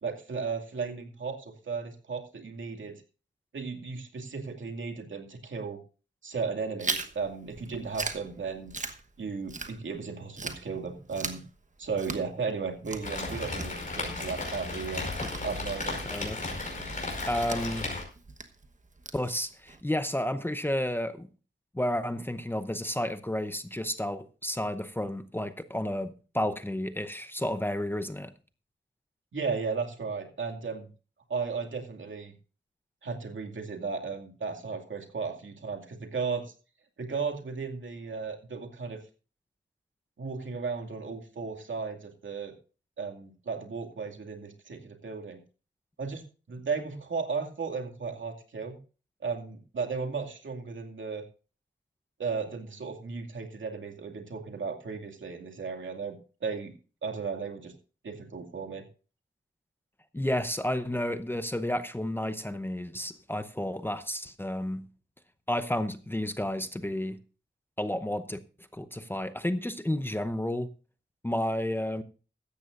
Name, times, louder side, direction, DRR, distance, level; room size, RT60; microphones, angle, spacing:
voice 1, 0.0-3.0 3.5-5.8 6.2-8.7 9.2-11.4 11.8-15.1 15.4-16.0 29.3-30.9 31.3-32.3 33.0-36.5 37.0-39.0 40.2-42.5 43.0-45.4 46.0-48.8 49.2-51.2 52.2-56.7 57.0-57.7 58.0-58.9, right 5 dB, 75° right, 4 dB, 2.4 m, -35 dB
Chewing mastication, 6.8-10.1 10.4-19.8, right 3 dB, 40° right, 1.2 m, -40 dB
Rain, 13.0-18.0, left 2 dB, 40° left, 5.1 m, -35 dB
voice 2, 16.1-16.4 17.3-17.9 19.1-21.3 21.7-28.3 60.1-64.8 65.5-67.2 67.8-68.4 68.7-70.7 71.2-72.0, left 1 dB, 10° left, 10 dB, 0.7 m, -31 dB
16.0 x 13.5 x 2.6 m, 0.35 s
wide cardioid pair, 150°, 20 cm